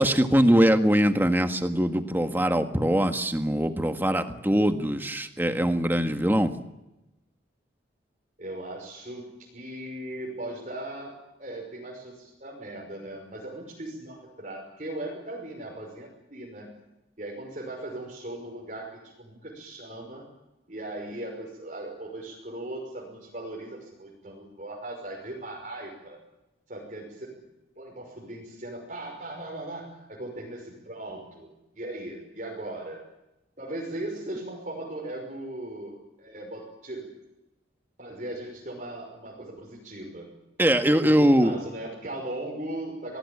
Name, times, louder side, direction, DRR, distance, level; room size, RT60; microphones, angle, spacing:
voice 1, 0.0-6.5 40.6-41.5, equal, 10° right, 7 dB, 1.6 m, -22 dB
voice 2, 8.4-16.7 17.2-20.2 20.7-26.2 26.7-27.4 27.8-33.0 33.6-37.1 38.0-40.3 40.9-43.2, right 1 dB, 40° right, -2 dB, 5.8 m, -38 dB
27.5 x 19.5 x 8.6 m, 0.96 s
head